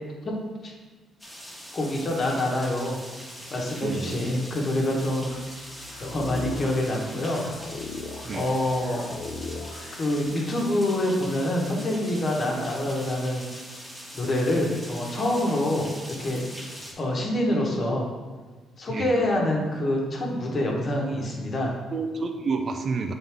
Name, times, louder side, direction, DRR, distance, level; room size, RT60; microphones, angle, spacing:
sound 1, 1.2-16.9, equal, ahead, 1.5 m, -42 dB
voice 1, 1.7-3.0 3.5-5.3 6.0-7.4 8.3-9.1 9.9-13.4 14.1-16.4 17.0-18.1 18.8-21.7, left 1 dB, 40° left, -1 dB, 1.3 m, -26 dB
voice 2, 3.8-4.2 8.2-8.5 18.9-19.1 21.9-23.1, right 4 dB, 40° right, 6 dB, 0.6 m, -29 dB
sound 2, 5.2-10.2, left 3 dB, 55° left, 0.7 m, -39 dB
7.6 x 3.9 x 3.5 m, 1.4 s
cardioid pair, 110°, 0 cm